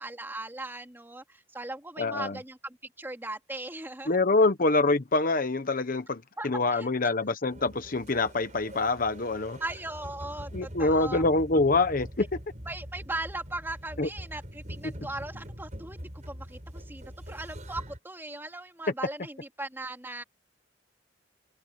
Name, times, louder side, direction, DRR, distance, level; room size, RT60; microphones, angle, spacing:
voice 1, 0.0-4.2 6.4-6.9 9.6-11.2 12.7-20.2, right 2 dB, 10° right, 2.9 m, -38 dB
voice 2, 2.0-2.4 4.1-9.6 10.5-12.3 14.0-14.1 14.8-14.9, left 3 dB, 50° left, 1.0 m, -25 dB
sound 1, 7.5-18.0, equal, 40° right, 7.6 m, -43 dB
head